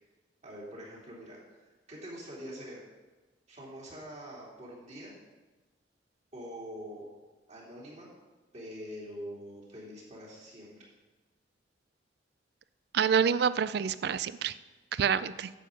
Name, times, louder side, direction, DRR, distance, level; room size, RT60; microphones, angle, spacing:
voice 1, 0.4-1.6 1.9-2.8 3.5-5.1 6.3-7.1 7.5-8.1 8.5-10.7, equal, 40° right, -5 dB, 3.1 m, -44 dB
voice 2, 12.9-14.5 14.9-15.5, right 7 dB, 65° right, 16 dB, 0.4 m, -27 dB
10.0 x 7.8 x 5.2 m, 1.2 s
head